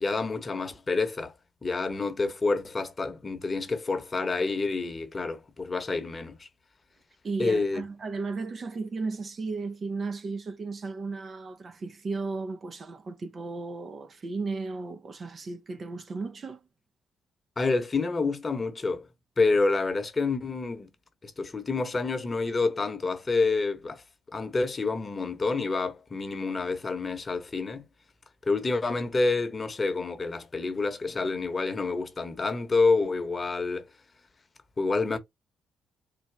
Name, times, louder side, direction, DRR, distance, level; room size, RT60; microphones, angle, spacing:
voice 1, 0.0-1.3 1.6-6.5 7.4-7.8 17.6-19.1 19.4-20.9 21.2-24.0 24.3-27.8 28.4-33.9 34.8-35.2, left 3 dB, 30° left, 1.0 m, -28 dB
voice 2, 7.2-16.6, right 3 dB, 40° right, 0.6 m, -35 dB
4.2 x 2.2 x 3.3 m
cardioid pair, 90°, 0 cm